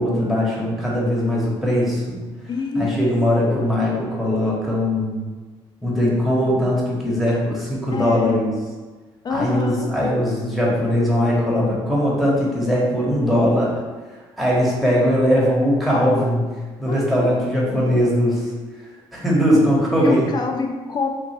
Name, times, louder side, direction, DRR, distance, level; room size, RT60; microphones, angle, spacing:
voice 1, 0.0-2.2 2.7-5.3 5.8-8.5 9.3-13.7 14.4-16.4 16.8-18.5 19.1-20.3, equal, ahead, -6 dB, 1.1 m, -20 dB
voice 2, 2.5-3.0 3.4-3.6 7.9-8.4 9.2-9.9 16.9-17.4 20.0-21.1, left 4 dB, 30° left, 3 dB, 0.4 m, -26 dB
3.0 x 2.4 x 2.9 m, 1.3 s
supercardioid pair, 60°, 14 cm